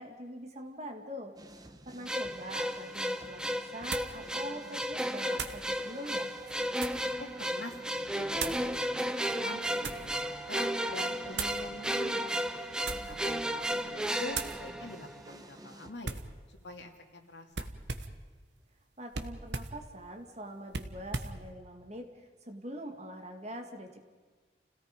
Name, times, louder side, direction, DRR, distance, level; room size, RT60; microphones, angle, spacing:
voice 1, 0.0-1.3 1.9-6.3 19.0-24.0, equal, 40° right, 5 dB, 2.1 m, -44 dB
sound 1, 1.4-15.9, right 1 dB, 20° right, 1.0 m, -51 dB
sound 2, 2.1-15.3, equal, 5° right, 0.7 m, -34 dB
sound 3, 2.8-2.9 3.9-4.2 5.3-5.7 6.4-7.1 8.3-8.7 9.4-10.1 11.3-11.6 12.7-13.2 13.6-13.9 14.3-14.6 16.0-16.3 17.5-18.2 19.1-19.8 20.7-21.4, right 4 dB, 70° right, 1.2 m, -38 dB
voice 2, 7.2-12.5 13.0-16.2 16.5-17.7, left 2 dB, 75° left, 3 dB, 2.6 m, -45 dB
29.5 x 17.5 x 5.2 m, 1.4 s
head